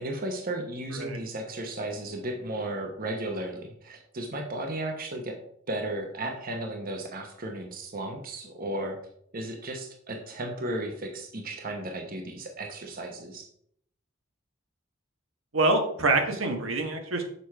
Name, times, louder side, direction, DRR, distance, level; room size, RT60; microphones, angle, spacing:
voice 1, 0.0-5.4 5.7-9.0 9.3-13.5, right 1 dB, 45° right, 3 dB, 1.0 m, -34 dB
voice 2, 15.5-17.2, right 2 dB, 80° right, 4 dB, 1.3 m, -25 dB
6.8 x 5.0 x 4.6 m, 0.69 s
head